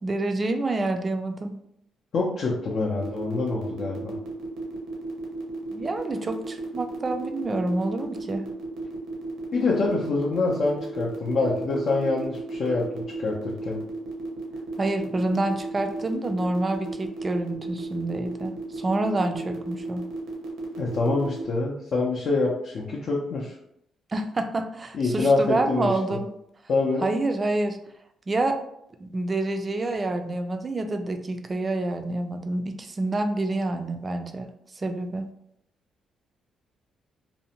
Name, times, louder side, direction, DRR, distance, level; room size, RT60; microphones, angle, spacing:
voice 1, 0.0-1.5 5.7-8.5 14.8-20.1 24.1-26.3 27.0-27.8 28.3-28.6 29.0-34.5 34.8-35.3, right 2 dB, 30° right, 6 dB, 0.3 m, -27 dB
voice 2, 2.1-4.2 9.5-13.8 20.8-23.5 24.9-25.9 26.7-27.1, left 3 dB, 60° left, -4 dB, 0.5 m, -25 dB
sound 1, 3.0-21.4, right 2 dB, 85° right, 0.6 m, -34 dB
2.6 x 2.1 x 2.7 m, 0.74 s
cardioid pair, 90°, 0 cm